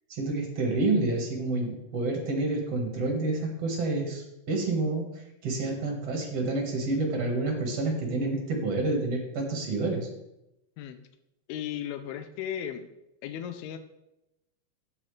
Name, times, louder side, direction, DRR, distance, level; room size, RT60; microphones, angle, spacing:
voice 1, 0.1-5.0 5.4-10.1, right 2 dB, 50° right, 1 dB, 2.2 m, -28 dB
voice 2, 11.5-12.9 13.2-13.8, left 10 dB, 85° left, 9 dB, 2.6 m, -35 dB
12.0 x 8.8 x 3.3 m, 0.89 s
omnidirectional pair, 4.4 m